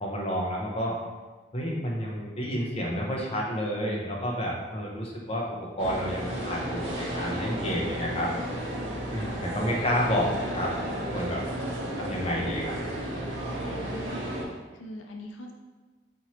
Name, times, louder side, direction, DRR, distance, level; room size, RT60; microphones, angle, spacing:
voice 1, 0.0-1.0 1.5-8.3 9.1-10.7 11.1-11.4 11.9-12.7, equal, 30° left, -2 dB, 0.6 m, -30 dB
sound 1, 5.8-14.4, right 1 dB, 75° right, 0.8 m, -33 dB
voice 2, 13.6-14.4 14.7-15.5, left 1 dB, 90° left, 2 dB, 0.5 m, -42 dB
4.3 x 3.0 x 2.9 m, 1.3 s
head